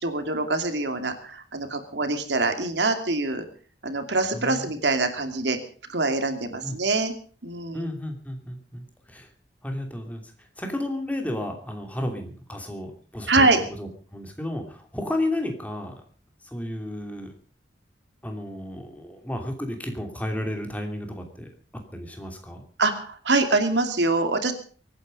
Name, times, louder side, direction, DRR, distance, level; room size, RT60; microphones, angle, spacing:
voice 1, 0.0-3.4 3.8-5.6 5.9-7.1 7.4-7.9 13.3-13.6 22.8-24.5, right 3 dB, 75° right, 7 dB, 2.5 m, -24 dB
voice 2, 4.3-4.7 6.6-6.8 7.7-9.3 9.6-10.2 10.6-13.5 13.8-15.9 16.4-17.3 18.2-21.5 21.9-22.6, left 1 dB, 10° left, 3 dB, 2.8 m, -32 dB
24.0 x 9.6 x 5.3 m, 0.43 s
head